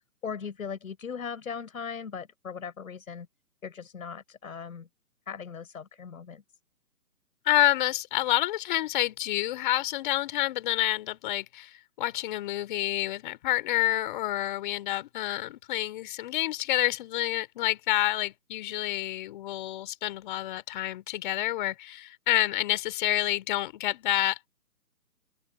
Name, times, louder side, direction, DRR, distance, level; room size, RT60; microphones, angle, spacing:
voice 1, 0.2-3.3 3.6-4.9 5.3-6.4, left 6 dB, 60° left, 5.0 m, -38 dB
voice 2, 7.5-24.5, left 15 dB, 30° left, 3.5 m, -28 dB
open air
hypercardioid pair, 150°, 47 cm